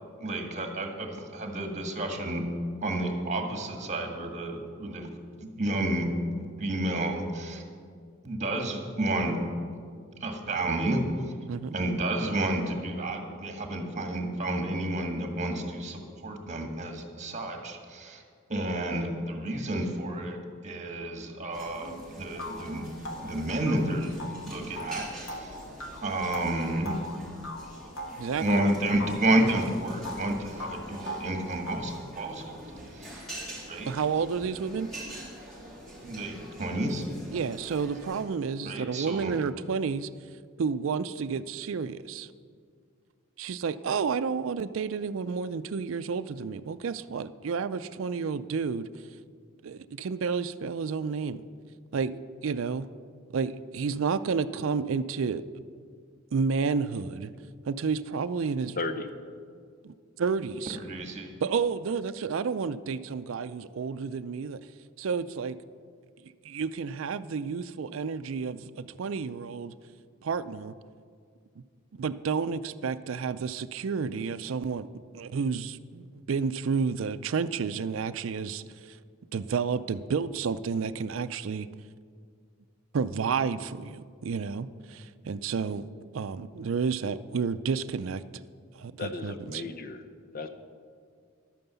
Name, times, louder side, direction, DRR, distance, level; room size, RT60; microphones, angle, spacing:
voice 1, 0.2-2.4 2.8-5.1 5.4-6.1 6.4-7.6 8.2-9.4 10.2-11.0 11.7-18.2 18.5-22.8 23.2-24.2 24.4-25.5 26.0-27.0 28.4-32.5 32.9-33.2 33.7-33.9 36.0-37.0 38.6-39.3 60.7-61.3, right 1 dB, 35° right, 4 dB, 1.6 m, -30 dB
sound 1, 21.5-38.2, right 1 dB, 5° left, 3.2 m, -45 dB
sound 2, 21.8-21.9 22.4-28.7 29.0-30.3 30.6-32.0, left 1 dB, 85° left, 1.5 m, -39 dB
voice 2, 28.2-28.7 33.8-34.9 37.3-40.1 40.6-42.3 43.4-49.0 49.6-51.4 51.9-52.9 53.3-55.4 56.3-57.3 57.7-58.8 59.8-60.8 61.4-64.6 65.0-65.6 66.4-69.7 70.2-70.7 71.6-71.7 72.0-74.9 75.1-79.0 79.3-81.7 82.9-85.9 86.1-88.4 88.7-89.6, right 5 dB, 70° right, 12 dB, 0.4 m, -31 dB
voice 3, 58.8-59.1 89.0-90.0 90.3-90.5, left 3 dB, 45° left, 8 dB, 0.9 m, -34 dB
11.5 x 9.2 x 6.9 m, 2.1 s
head